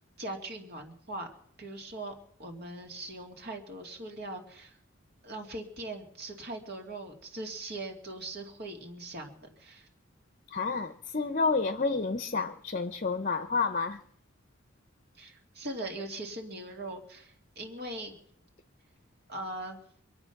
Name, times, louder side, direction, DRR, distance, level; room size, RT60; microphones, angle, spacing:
voice 1, 0.2-1.3 1.6-2.1 2.4-4.8 5.2-9.9 15.2-18.2 19.3-19.8, right 2 dB, 50° right, 2.6 m, -40 dB
voice 2, 10.5-14.0, left 4 dB, 40° left, 0.7 m, -30 dB
25.5 x 8.9 x 5.9 m
head